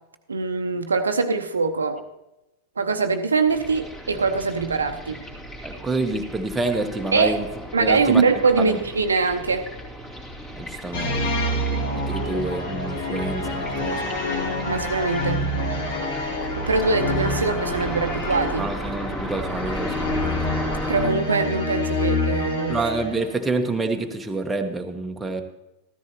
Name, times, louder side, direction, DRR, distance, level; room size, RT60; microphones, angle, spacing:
voice 1, 0.3-2.0 2.8-5.2 7.1-7.4 7.7-9.6 14.7-15.5 16.6-18.7 20.9-22.8, right 4 dB, 75° right, 8 dB, 0.7 m, -23 dB
sound 1, 3.5-21.1, equal, 25° left, 2.6 m, -35 dB
voice 2, 5.6-7.4 7.8-8.2 8.6-8.8 10.6-11.3 11.9-14.1 18.6-20.5 22.7-25.4, right 3 dB, 10° right, 4 dB, 1.0 m, -27 dB
sound 2, 10.9-23.5, left 1 dB, 55° left, 2.2 m, -27 dB
14.0 x 13.5 x 2.9 m, 0.97 s
figure-of-eight pair, 90°, 0 cm